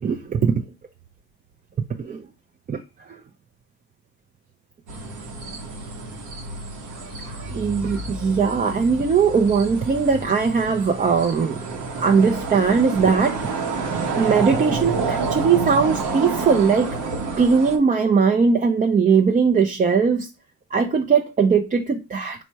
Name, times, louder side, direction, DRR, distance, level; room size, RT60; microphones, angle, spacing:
voice 1, 0.0-0.6 2.0-2.2 2.7-2.8 3.1-3.2 7.5-13.6 14.2-17.1 17.4-20.3 20.7-22.4, right 5 dB, 25° right, 0.4 m, -20 dB
sound 1, 4.9-17.8, right 4 dB, 90° right, 1.0 m, -29 dB
4.4 x 2.1 x 4.5 m
cardioid pair, 90°, 30 cm